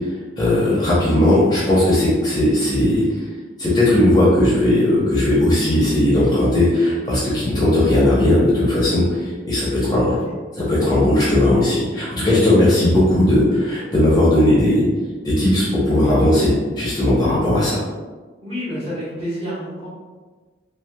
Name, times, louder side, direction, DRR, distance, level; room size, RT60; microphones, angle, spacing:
voice 1, 0.4-3.0 3.6-10.1 10.6-14.8 15.2-17.8, left 1 dB, 20° left, -8 dB, 0.8 m, -17 dB
voice 2, 9.7-10.3 18.4-19.9, equal, 30° right, -10 dB, 1.3 m, -30 dB
3.1 x 3.0 x 2.2 m, 1.4 s
head